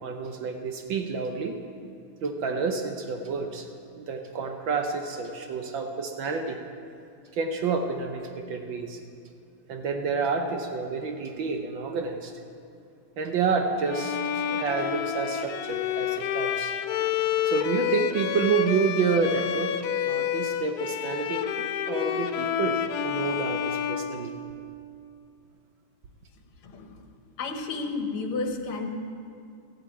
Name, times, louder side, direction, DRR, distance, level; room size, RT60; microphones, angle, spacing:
voice 1, 0.0-1.6 2.2-3.7 4.0-6.6 7.3-9.0 9.7-12.3 13.2-16.7 17.0-19.8 20.1-24.3, right 5 dB, 65° right, 5 dB, 1.5 m, -29 dB
Bowed string instrument, 13.9-24.9, left 9 dB, 90° left, 0.8 m, -29 dB
voice 2, 26.6-27.1 27.4-28.9, left 3 dB, 75° left, 4 dB, 2.0 m, -32 dB
14.5 x 7.9 x 8.5 m, 2.4 s
omnidirectional pair, 2.4 m